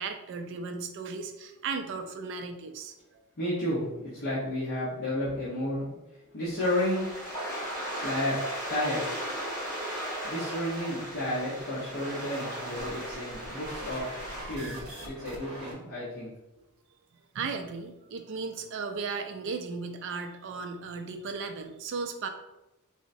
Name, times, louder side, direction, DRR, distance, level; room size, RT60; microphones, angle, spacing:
voice 1, 0.0-3.2 17.3-22.3, right 4 dB, 55° right, 6 dB, 0.3 m, -36 dB
voice 2, 3.4-3.9 4.1-6.0 6.3-7.1 8.0-8.4 8.7-9.0 10.2-14.1 14.5-16.3, left 1 dB, 50° left, -9 dB, 0.8 m, -31 dB
sound 1, 6.6-14.4, equal, 15° left, 1.0 m, -37 dB
sound 2, 12.1-15.7, right 1 dB, 75° right, 0.8 m, -43 dB
3.7 x 2.0 x 2.6 m, 0.97 s
head